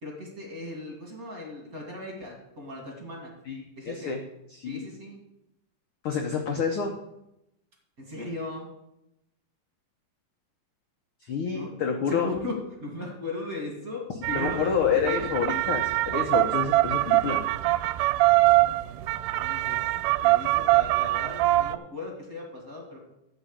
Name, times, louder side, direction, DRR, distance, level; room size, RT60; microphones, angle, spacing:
voice 1, 0.0-3.3 3.8-4.1 4.7-5.2 8.0-8.7 11.5-11.7 12.1-15.3 19.3-19.9 20.2-23.0, left 2 dB, 30° right, 0 dB, 2.2 m, -37 dB
voice 2, 3.4-4.2 4.5-4.9 6.0-6.9 11.2-12.3 14.3-17.4, left 6 dB, 75° left, 2 dB, 1.2 m, -28 dB
sound 1, 14.2-21.8, right 18 dB, 80° right, 2.0 m, -23 dB
13.0 x 4.8 x 8.6 m, 0.87 s
omnidirectional pair, 3.8 m